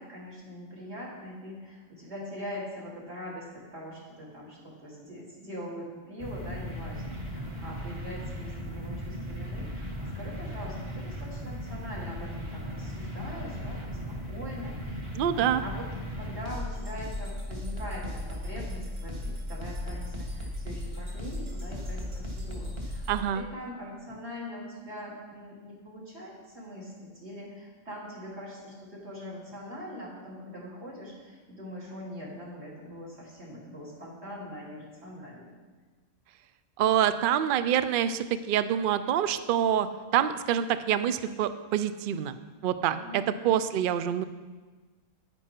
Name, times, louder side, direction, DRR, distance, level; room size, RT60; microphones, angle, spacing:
voice 1, 0.0-15.0 15.3-15.9 16.1-23.0 23.3-35.5 42.9-43.8, equal, 50° right, -5 dB, 3.0 m, -42 dB
sound 1, 6.2-23.2, equal, 20° right, 1.4 m, -36 dB
voice 2, 15.1-15.6 23.1-23.4 36.8-39.9 40.1-42.4 42.6-44.2, right 10 dB, 75° right, 12 dB, 0.4 m, -26 dB
9.8 x 9.8 x 4.4 m, 1.4 s
omnidirectional pair, 1.4 m